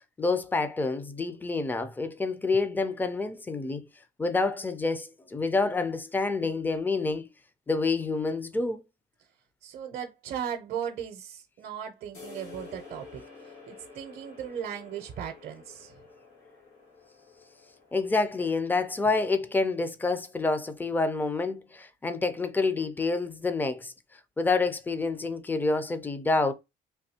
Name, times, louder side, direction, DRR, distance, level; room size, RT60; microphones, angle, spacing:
voice 1, 0.2-3.9 4.2-7.2 7.7-8.8 17.9-23.9 24.4-26.5, left 3 dB, 10° left, 0.4 m, -28 dB
voice 2, 9.6-13.2 13.7-15.9, right 9 dB, 60° right, 0.6 m, -37 dB
sound 1, 12.1-19.7, left 4 dB, 90° left, 1.7 m, -50 dB
3.4 x 2.7 x 2.8 m
cardioid pair, 110°, 17 cm